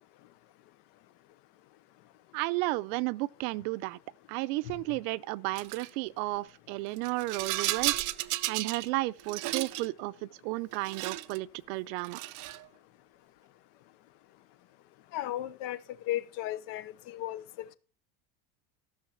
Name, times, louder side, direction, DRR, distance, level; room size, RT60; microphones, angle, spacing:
voice 1, 2.3-4.0 4.3-7.9 8.5-12.2, right 20 dB, 80° right, 0.7 m, -33 dB
Rattle, 5.5-5.9 7.0-8.9 9.2-9.9 10.7-11.4 12.0-12.6, right 17 dB, 45° right, 0.4 m, -33 dB
voice 2, 15.1-15.8 16.1-17.4, left 14 dB, 75° left, 1.0 m, -34 dB
14.0 x 6.4 x 5.6 m
cardioid pair, 170°, 49 cm